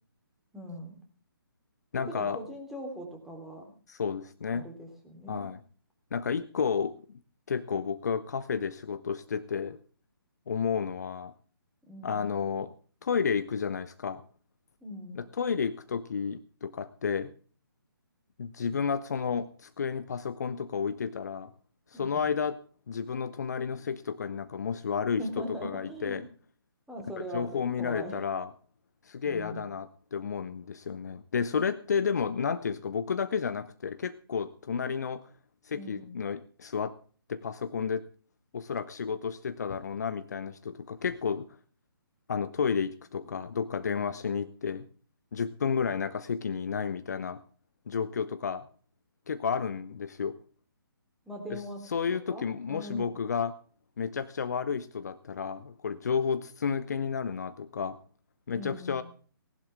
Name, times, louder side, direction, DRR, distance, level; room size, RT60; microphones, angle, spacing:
voice 1, 0.5-1.0 2.1-3.7 4.5-5.5 11.9-12.3 14.8-15.2 21.9-22.2 25.2-26.2 26.9-28.2 29.2-29.7 35.7-36.1 51.2-51.8 52.3-53.1 58.5-59.0, equal, ahead, 2 dB, 3.4 m, -41 dB
voice 2, 1.9-2.4 3.9-4.7 5.3-5.6 6.1-6.9 7.5-9.8 10.5-11.3 12.0-12.7 13.0-14.2 15.1-17.3 18.4-21.5 21.9-22.6 22.9-26.2 27.3-28.5 29.0-35.2 35.6-36.9 37.3-38.1 38.5-41.5 42.3-44.9 45.3-47.4 47.9-48.7 49.3-50.4 51.5-51.6 51.9-53.5 54.0-58.0 58.5-59.0, left 6 dB, 45° left, 13 dB, 0.9 m, -31 dB
19.0 x 11.5 x 3.5 m, 0.41 s
figure-of-eight pair, 140°, 12 cm